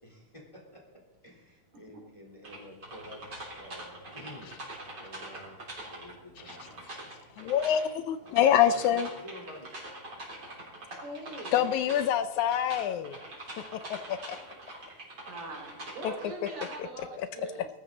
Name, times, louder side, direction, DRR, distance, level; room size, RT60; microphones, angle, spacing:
voice 1, 0.0-4.5 5.0-5.6 5.9-7.1 8.2-9.7, equal, 10° left, -2 dB, 3.4 m, -49 dB
sound 1, 2.4-16.8, right 1 dB, 35° right, 4.0 m, -44 dB
voice 2, 7.4-9.1 11.5-13.2 13.7-14.4 16.0-16.1, left 10 dB, 80° left, 11 dB, 1.9 m, -26 dB
voice 3, 11.0-12.1 15.2-17.7, right 2 dB, 65° right, 1 dB, 4.4 m, -42 dB
20.0 x 13.5 x 4.0 m, 0.96 s
omnidirectional pair, 3.6 m